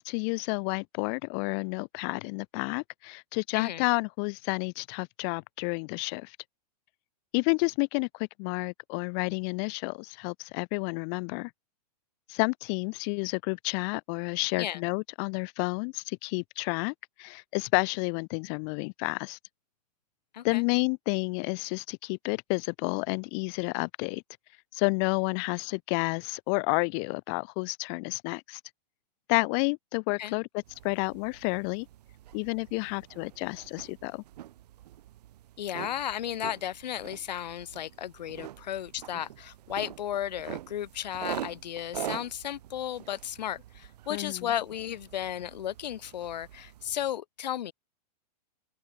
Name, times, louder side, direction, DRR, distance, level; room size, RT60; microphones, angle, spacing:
voice 1, 0.0-6.4 7.3-11.5 12.3-19.4 20.4-24.2 24.7-28.6 29.3-31.9 32.3-34.2 44.1-44.5, left 40 dB or more, 35° left, 0.6 m, -30 dB
voice 2, 3.5-3.8 14.6-14.8 20.3-20.6 30.2-30.3 35.6-47.7, left 11 dB, 80° left, 1.7 m, -34 dB
sound 1, 30.6-47.1, right 13 dB, 70° right, 2.2 m, -44 dB
open air
hypercardioid pair, 145°, 21 cm